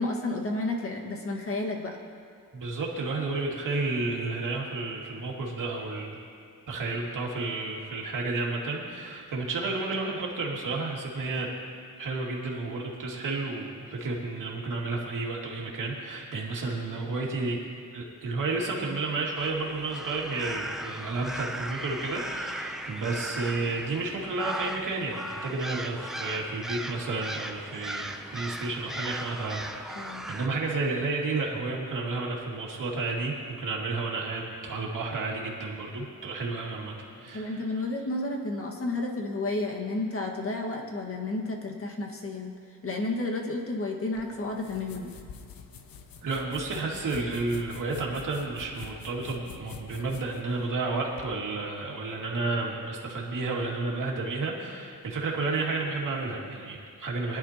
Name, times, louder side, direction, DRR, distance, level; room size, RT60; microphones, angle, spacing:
voice 1, 0.0-2.0 11.9-12.0 29.9-30.3 37.2-42.5 42.8-45.1, left 2 dB, 40° left, 0 dB, 1.7 m, -31 dB
voice 2, 2.5-6.2 6.7-11.5 12.0-17.6 17.9-37.5 46.2-57.4, right 3 dB, 65° right, -2 dB, 2.3 m, -31 dB
sound 1, 19.4-30.5, right 1 dB, ahead, 0.5 m, -38 dB
sound 2, 44.1-51.3, left 6 dB, 85° left, 0.9 m, -46 dB
22.0 x 11.0 x 2.9 m, 2.3 s
wide cardioid pair, 115°, 34 cm